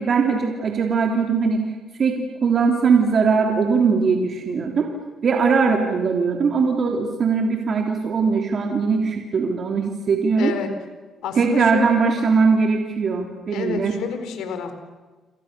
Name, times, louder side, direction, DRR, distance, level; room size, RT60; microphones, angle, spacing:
voice 1, 0.0-1.6 2.0-4.9 5.2-10.5 11.4-13.9, right 5 dB, 50° right, 2 dB, 3.3 m, -20 dB
voice 2, 10.4-10.7 11.2-12.1 13.5-14.7, left 6 dB, 85° left, 8 dB, 4.2 m, -29 dB
28.5 x 26.5 x 6.9 m, 1.3 s
cardioid pair, 90°, 0 cm